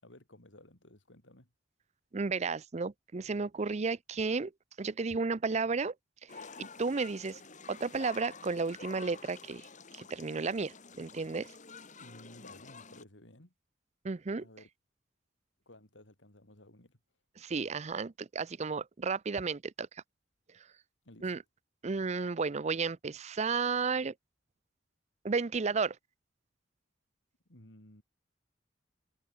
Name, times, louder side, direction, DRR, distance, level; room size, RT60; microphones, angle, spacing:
voice 1, 0.0-1.5 12.0-13.5 14.4-14.7 15.7-17.0 21.0-21.4 27.5-28.0, left 1 dB, 80° left, 4.6 m, -55 dB
voice 2, 2.1-4.5 4.8-5.9 6.6-7.4 7.7-9.6 9.9-11.5 14.0-14.4 17.4-19.9 21.2-21.4 21.8-24.1 25.2-26.0, right 4 dB, 35° right, 0.5 m, -33 dB
sound 1, 6.3-13.0, left 5 dB, 40° left, 3.3 m, -49 dB
open air
head